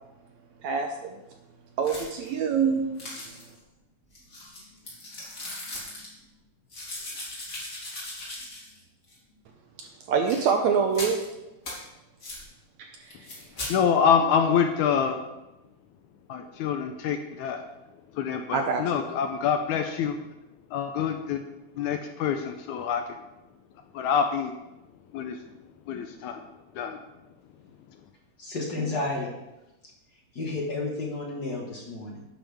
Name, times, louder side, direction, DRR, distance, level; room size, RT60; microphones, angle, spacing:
voice 1, 0.6-1.2 1.8-2.9 9.8-11.2 12.8-12.9 18.5-18.8, right 6 dB, 75° right, 4 dB, 1.8 m, -25 dB
sound 1, 1.8-2.3 3.0-3.6 4.1-6.1 6.7-8.8 9.1-9.2 10.2-10.5 10.9-11.2 11.6-11.8 12.2-12.4 13.1-13.7, left 1 dB, 25° left, 2.9 m, -38 dB
voice 2, 13.7-15.2 16.3-17.7 18.1-20.2 20.7-21.4 21.8-23.2 23.9-24.5 25.1-25.4 25.9-26.4 26.8-27.0, left 7 dB, 80° left, 6 dB, 1.9 m, -26 dB
voice 3, 28.4-29.3 30.3-32.2, left 2 dB, 40° left, -2 dB, 1.6 m, -31 dB
11.5 x 9.0 x 3.5 m, 0.96 s
omnidirectional pair, 3.8 m